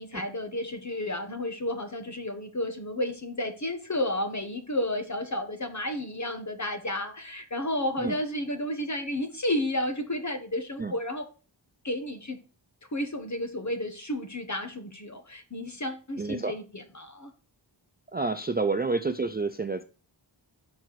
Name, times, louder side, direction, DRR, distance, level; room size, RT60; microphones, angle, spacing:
voice 1, 0.0-11.3 11.8-12.4 12.9-17.3, left 1 dB, 40° left, 1.3 m, -32 dB
voice 2, 16.2-16.5 18.1-19.8, right 3 dB, 25° right, 0.4 m, -29 dB
6.6 x 4.6 x 6.0 m
wide cardioid pair, 75°, 46 cm